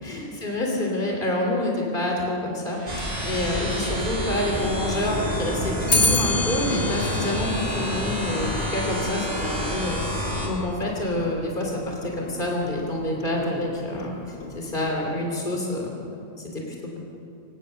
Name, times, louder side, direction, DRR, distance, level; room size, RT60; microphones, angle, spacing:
voice 1, 0.0-16.0 16.4-17.0, left 1 dB, 50° left, -1 dB, 3.3 m, -28 dB
sound 1, 2.7-5.4, right 1 dB, 55° right, 5.0 m, -42 dB
sound 2, 2.9-10.5, equal, 35° right, 4.0 m, -28 dB
Clock, 5.9-15.3, left 2 dB, 80° left, 1.7 m, -31 dB
24.0 x 20.5 x 6.6 m, 2.6 s
omnidirectional pair, 1.1 m